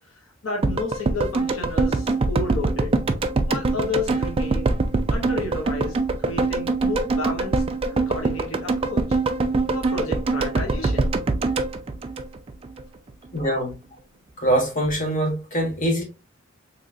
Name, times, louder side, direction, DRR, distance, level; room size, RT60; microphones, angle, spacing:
voice 1, 0.1-2.9 3.5-4.7 5.1-7.6 7.9-9.2 9.7-11.1, left 3 dB, 80° left, 0.8 m, -31 dB
sound 1, 0.6-12.8 13.1-13.2, right 3 dB, 25° right, 0.3 m, -23 dB
voice 2, 13.3-13.7 14.4-16.0, right 1 dB, 40° left, 1.4 m, -23 dB
3.9 x 2.9 x 2.4 m
head